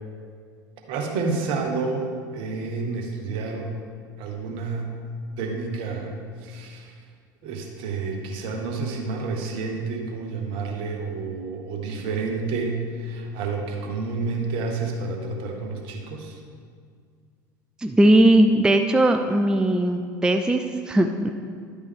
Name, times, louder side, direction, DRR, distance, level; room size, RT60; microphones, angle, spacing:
voice 1, 0.9-3.7 4.2-4.9 5.4-6.1 6.4-6.9 7.4-16.4, right 4 dB, 55° right, 2 dB, 1.3 m, -29 dB
voice 2, 17.8-21.3, right 1 dB, 5° right, 5 dB, 0.4 m, -19 dB
11.0 x 5.2 x 3.5 m, 2.1 s
hypercardioid pair, 70°, 11 cm